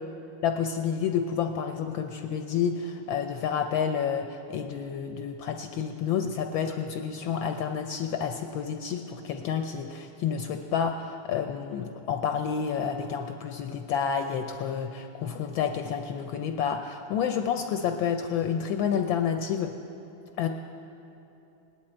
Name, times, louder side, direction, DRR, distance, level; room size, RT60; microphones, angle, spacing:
voice 1, 0.4-19.7 20.4-20.5, left 7 dB, 75° left, 5 dB, 1.2 m, -29 dB
19.0 x 10.5 x 4.3 m, 2.9 s
omnidirectional pair, 2.4 m